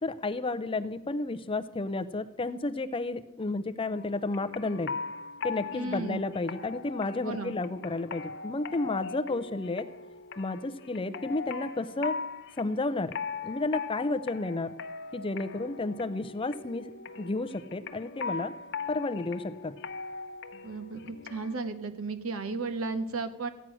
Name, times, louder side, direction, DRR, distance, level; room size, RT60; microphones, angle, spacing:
voice 1, 0.0-4.9 5.4-9.9 10.4-12.2 12.6-13.1 13.4-14.7 15.1-16.9 17.2-18.5 18.9-19.7, left 2 dB, 25° left, 11 dB, 0.5 m, -32 dB
sound 1, 3.9-21.6, left 5 dB, 55° left, 0.8 m, -40 dB
voice 2, 5.7-6.2 7.2-7.5 20.6-23.5, right 3 dB, 80° right, 8 dB, 1.2 m, -34 dB
14.5 x 9.2 x 6.2 m, 0.95 s
head